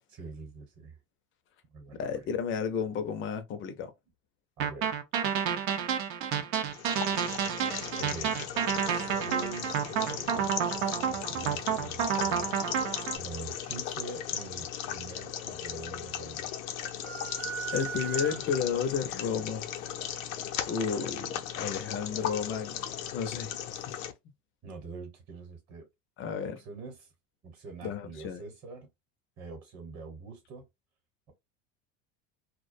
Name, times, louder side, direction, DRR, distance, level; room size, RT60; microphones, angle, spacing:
voice 1, 0.1-1.0 1.7-2.3 4.6-5.0 8.0-8.4 8.9-12.5 12.8-16.5 24.6-25.9 26.6-27.1 27.4-28.9 29.4-30.6, right 4 dB, 30° right, 1.0 m, -44 dB
voice 2, 2.0-3.9 17.7-19.7 20.7-23.5 23.9-24.0 26.2-26.6 27.8-28.4, left 6 dB, 30° left, 0.5 m, -32 dB
sound 1, 4.6-13.2, right 8 dB, 85° right, 0.7 m, -30 dB
sound 2, 6.7-24.1, left 10 dB, 90° left, 0.6 m, -37 dB
sound 3, 17.0-18.8, right 8 dB, 50° right, 0.6 m, -38 dB
2.3 x 2.1 x 2.5 m
supercardioid pair, 125°, 40 cm